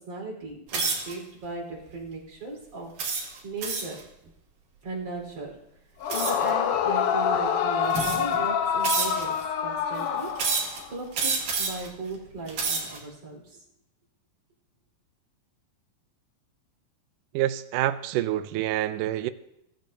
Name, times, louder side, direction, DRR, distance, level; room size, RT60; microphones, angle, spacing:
voice 1, 0.0-2.9 3.4-4.0 4.8-5.6 6.1-10.3 10.9-13.6, right 3 dB, 45° right, 5.5 m, -37 dB
sound 1, 0.7-1.1 1.8-2.0 3.0-4.0 6.1-6.5 7.3-7.4 7.9-8.4 8.8-9.4 10.4-10.8 11.1-11.9 12.4-13.0, right 4 dB, 60° right, 3.6 m, -28 dB
Yell / Screaming, 6.0-10.9, left 8 dB, 70° left, 2.3 m, -26 dB
voice 2, 17.3-19.3, right 13 dB, 80° right, 2.0 m, -27 dB
22.0 x 13.5 x 2.8 m
omnidirectional pair, 4.1 m